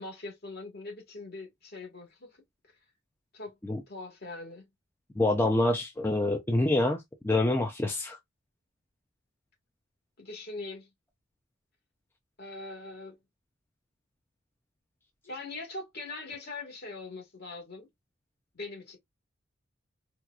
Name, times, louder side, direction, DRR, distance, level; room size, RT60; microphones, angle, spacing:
voice 1, 0.0-2.4 3.3-3.5 3.9-4.6 10.2-10.9 12.4-13.2 15.2-17.9 18.5-19.0, left 3 dB, 50° left, 1.5 m, -41 dB
voice 2, 5.2-8.2, left 2 dB, 10° left, 0.4 m, -26 dB
4.4 x 2.4 x 2.3 m
head